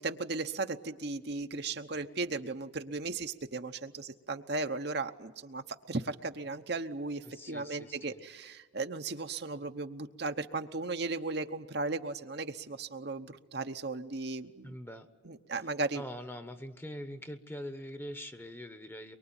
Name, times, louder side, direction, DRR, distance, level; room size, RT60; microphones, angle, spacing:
voice 1, 0.0-14.8 15.2-16.0, right 3 dB, 55° right, 7 dB, 1.0 m, -36 dB
voice 2, 7.2-8.2 14.6-15.1 15.9-19.2, equal, 10° left, 9 dB, 1.1 m, -43 dB
23.5 x 23.5 x 9.0 m, 1.3 s
head